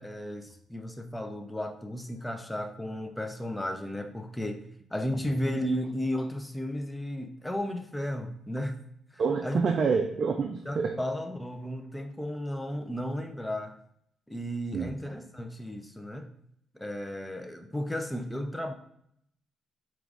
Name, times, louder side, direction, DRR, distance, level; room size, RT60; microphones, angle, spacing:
voice 1, 0.0-4.7 4.9-8.8 9.1-9.6 10.7-13.8 14.3-16.3 16.7-18.7, equal, 10° left, 6 dB, 0.5 m, -34 dB
voice 2, 9.2-11.0 14.7-14.9, right 5 dB, 50° right, 4 dB, 0.4 m, -27 dB
4.8 x 3.0 x 2.5 m, 0.70 s
cardioid pair, 90°, 0 cm